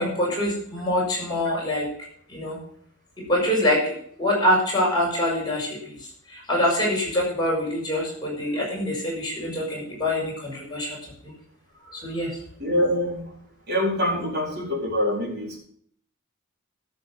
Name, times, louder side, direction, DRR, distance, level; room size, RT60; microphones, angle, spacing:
voice 1, 0.0-1.9 2.3-2.6 3.3-5.9 6.3-11.0 11.2-11.3 11.9-12.3, left 1 dB, 20° left, -4 dB, 5.8 m, -25 dB
voice 2, 12.6-13.2 13.7-15.6, left 1 dB, 50° right, -2 dB, 4.4 m, -25 dB
13.0 x 6.7 x 6.6 m, 0.64 s
head